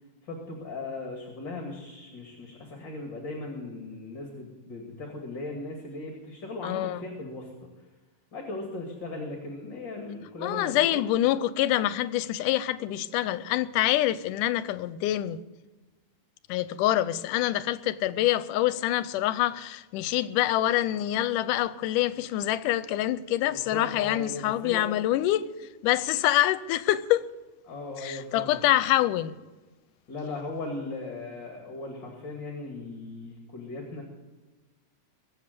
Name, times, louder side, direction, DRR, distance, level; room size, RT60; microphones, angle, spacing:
voice 1, 0.2-7.7 8.3-11.0 23.5-24.9 27.7-28.5 30.1-34.0, left 3 dB, 40° left, 2.6 m, -38 dB
voice 2, 6.6-7.0 10.4-15.4 16.5-25.5 25.8-27.2 28.0-29.3, left 14 dB, 85° left, 2.2 m, -26 dB
23.0 x 7.7 x 6.7 m
omnidirectional pair, 3.7 m